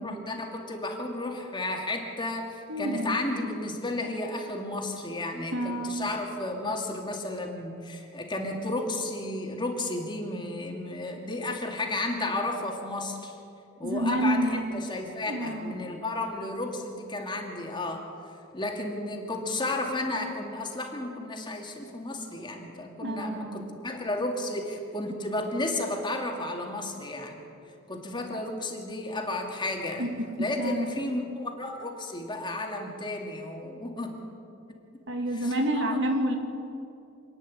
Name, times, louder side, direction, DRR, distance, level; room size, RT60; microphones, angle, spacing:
voice 1, 0.0-13.4 13.8-18.1 18.5-27.4 27.9-30.1 30.4-34.2 35.4-35.8, left 2 dB, 25° left, 1 dB, 2.3 m, -33 dB
voice 2, 2.7-3.2 5.5-6.1 13.8-14.7 15.3-15.8 23.0-23.7 30.0-30.9 35.1-36.4, right 1 dB, 60° right, 3 dB, 2.5 m, -29 dB
26.5 x 9.7 x 10.0 m, 2.7 s
head